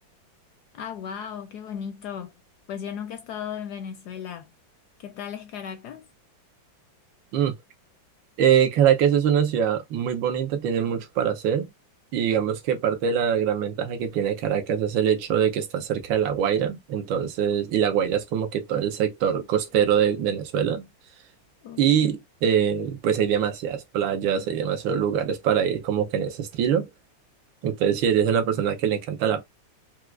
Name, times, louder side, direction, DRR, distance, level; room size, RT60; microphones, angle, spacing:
voice 1, 0.7-2.3 2.7-4.5 5.0-6.1 21.6-22.2, left 8 dB, 75° left, 1.0 m, -36 dB
voice 2, 8.4-11.7 12.1-20.9 21.8-26.9 27.6-29.4, right 8 dB, 80° right, 1.5 m, -23 dB
4.6 x 2.0 x 2.3 m
omnidirectional pair, 2.1 m